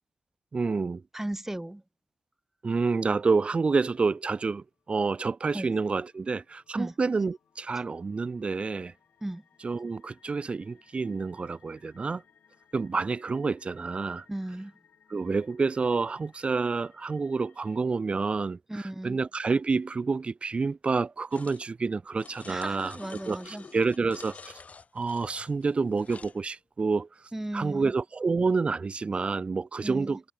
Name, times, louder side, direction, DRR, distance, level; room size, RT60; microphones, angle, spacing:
voice 1, 0.5-1.0 2.6-8.9 9.6-12.2 12.7-14.3 15.1-23.0 23.3-24.5 24.9-27.1 27.5-30.2, right 4 dB, 40° right, 0.3 m, -28 dB
voice 2, 1.1-1.8 5.5-5.7 6.8-6.9 9.2-9.4 14.3-14.7 18.7-19.2 22.5-23.7 27.3-27.9 29.8-30.2, right 1 dB, 10° right, 0.7 m, -36 dB
sound 1, 4.6-17.8, left 8 dB, 75° left, 7.3 m, -65 dB
sound 2, 21.3-21.6 22.2-26.4, left 4 dB, 50° left, 5.9 m, -48 dB
supercardioid pair, 45°, 3 cm